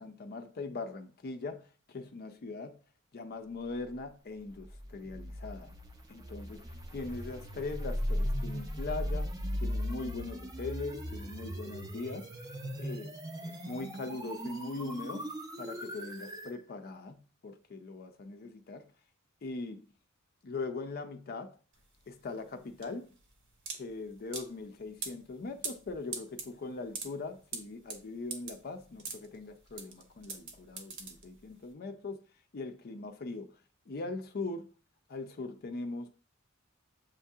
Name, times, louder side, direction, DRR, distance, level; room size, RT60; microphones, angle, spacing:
voice 1, 0.0-2.8 3.1-5.7 6.1-12.3 12.8-13.1 13.4-15.3 15.6-18.9 19.4-19.8 20.4-21.6 22.1-23.1 23.8-32.2 32.5-33.5 33.9-34.7 35.1-36.1, left 3 dB, 45° left, 0.4 m, -41 dB
sound 1, 4.4-16.5, equal, 20° right, 0.5 m, -38 dB
sound 2, 21.7-31.7, right 4 dB, 60° right, 0.9 m, -43 dB
7.2 x 2.7 x 2.3 m
head